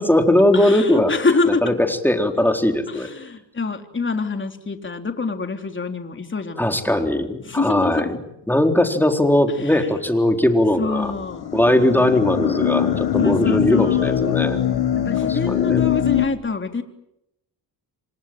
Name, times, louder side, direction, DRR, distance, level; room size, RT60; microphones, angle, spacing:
voice 1, 0.0-1.1 1.6-1.7 2.0-3.1 6.6-11.1 11.5-14.6 15.3-16.0, left 1 dB, 5° left, 5 dB, 4.1 m, -19 dB
voice 2, 0.5-1.8 2.9-7.1 7.4-8.1 9.5-9.9 10.8-11.4 13.2-14.2 15.0-16.8, left 3 dB, 25° left, 6 dB, 3.6 m, -26 dB
sound 1, 11.0-16.3, left 11 dB, 65° left, 2.1 m, -22 dB
29.5 x 25.5 x 7.8 m, 0.83 s
cardioid pair, 105°, 43 cm